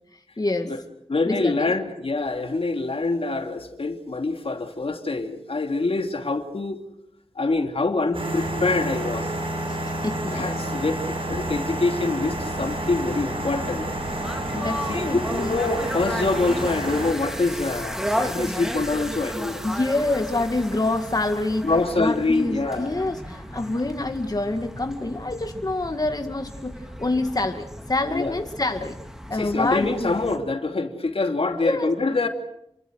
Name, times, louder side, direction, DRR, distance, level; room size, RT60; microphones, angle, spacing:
voice 1, 0.1-0.7 1.3-1.7 9.7-10.6 14.5-15.6 19.6-21.7 22.0-29.0 29.3-30.1 31.6-31.9, left 2 dB, 40° left, 5 dB, 2.1 m, -27 dB
voice 2, 1.1-6.8 7.4-9.3 10.3-13.9 14.9-19.6 21.6-22.9 28.1-28.3 29.3-32.3, left 3 dB, 70° left, 5 dB, 2.7 m, -25 dB
sound 1, 8.1-17.1, right 1 dB, 65° right, 7.9 m, -30 dB
sound 2, 12.2-30.4, equal, 5° right, 3.4 m, -34 dB
29.0 x 24.0 x 6.4 m, 0.76 s
wide cardioid pair, 70°, 10 cm